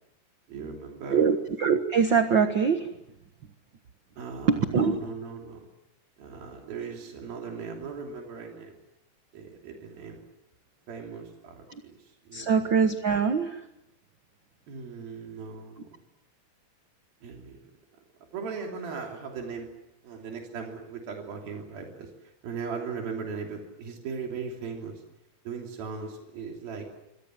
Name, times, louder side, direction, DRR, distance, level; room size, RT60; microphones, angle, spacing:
voice 1, 0.5-1.3 4.2-5.7 6.2-8.8 9.3-10.2 10.9-12.5 14.7-15.9 17.2-17.6 18.3-19.7 20.0-25.0 25.4-26.9, right 5 dB, 85° right, 1 dB, 5.0 m, -38 dB
voice 2, 1.1-2.9 4.5-5.0 12.3-13.6, right 6 dB, 60° right, 7 dB, 1.2 m, -23 dB
27.0 x 25.5 x 7.7 m, 0.86 s
omnidirectional pair, 4.1 m